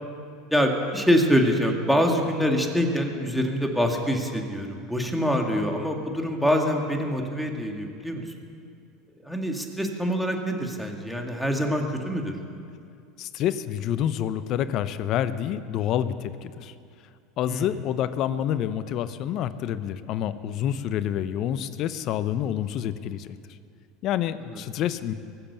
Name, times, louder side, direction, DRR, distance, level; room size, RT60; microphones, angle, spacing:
voice 1, 0.5-8.2 9.3-12.3 17.5-17.8 24.5-24.6, equal, ahead, 2 dB, 2.1 m, -25 dB
voice 2, 13.2-16.7 17.4-23.4 24.0-25.1, left 10 dB, 55° left, 13 dB, 0.8 m, -28 dB
23.0 x 7.7 x 7.0 m, 2.4 s
hypercardioid pair, 95°, 0 cm